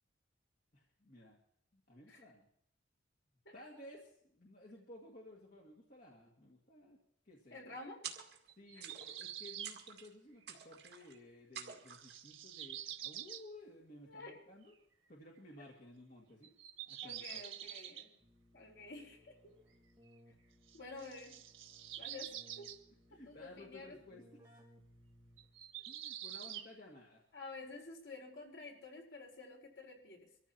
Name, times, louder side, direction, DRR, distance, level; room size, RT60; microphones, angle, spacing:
voice 1, 0.7-1.4 1.7-2.5 3.5-7.0 7.3-7.6 8.6-14.7 15.1-16.5 16.9-17.4 23.1-24.6 25.9-27.2, left 1 dB, 45° left, -2 dB, 2.0 m, -56 dB
voice 2, 7.5-8.0 8.7-8.8 14.0-14.4 17.0-18.1 18.5-19.6 20.7-21.3 22.0-22.3 22.6-22.7 23.1-24.0 27.3-30.3, left 3 dB, 70° left, 1 dB, 4.2 m, -50 dB
sound 1, 8.0-8.5 8.8-9.3 9.6-10.1 10.5-11.1 11.5-12.2, right 8 dB, 55° right, 2.1 m, -49 dB
sound 2, 8.5-9.7 11.2-11.3 11.7-13.5 14.7-14.8 16.4-18.1 20.7-22.8 25.4-26.7, right 11 dB, 80° right, 1.4 m, -47 dB
Keyboard (musical), 18.2-25.8, equal, 10° right, 3.3 m, -65 dB
24.0 x 14.5 x 2.9 m, 0.68 s
head